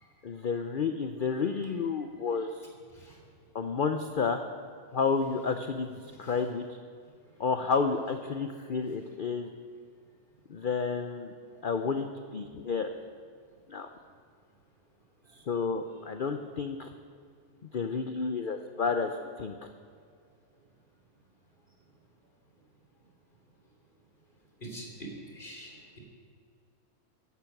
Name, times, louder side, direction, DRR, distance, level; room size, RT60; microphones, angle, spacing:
voice 1, 0.2-2.7 3.5-4.4 4.9-6.8 7.4-9.5 10.5-11.3 11.6-12.9 13.7-13.9 15.3-16.9 17.7-19.1 19.4-19.7, left 5 dB, 55° left, 7 dB, 0.6 m, -31 dB
voice 2, 24.6-26.0, right 1 dB, 30° left, -1 dB, 3.4 m, -44 dB
15.0 x 12.0 x 6.0 m, 2.2 s
omnidirectional pair, 1.7 m